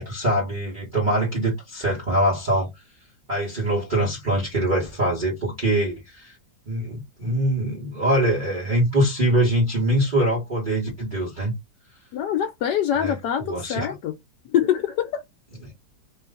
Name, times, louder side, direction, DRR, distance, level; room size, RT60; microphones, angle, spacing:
voice 1, 0.0-2.7 3.3-6.3 6.7-11.5 12.9-13.9 15.6-15.7, right 1 dB, 25° right, 1.6 m, -23 dB
voice 2, 12.1-14.1 14.5-15.2, left 10 dB, 75° left, 1.2 m, -24 dB
3.2 x 3.1 x 3.8 m
omnidirectional pair, 1.9 m